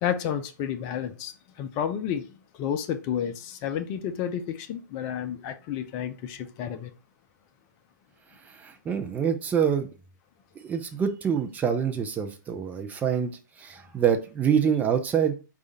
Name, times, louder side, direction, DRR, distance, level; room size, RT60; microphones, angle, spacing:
voice 1, 0.0-6.9, left 9 dB, 35° left, 0.6 m, -31 dB
voice 2, 8.4-9.9 10.6-13.3 13.6-15.3, right 8 dB, 15° right, 0.5 m, -26 dB
4.8 x 2.4 x 4.1 m
figure-of-eight pair, 115°, 10 cm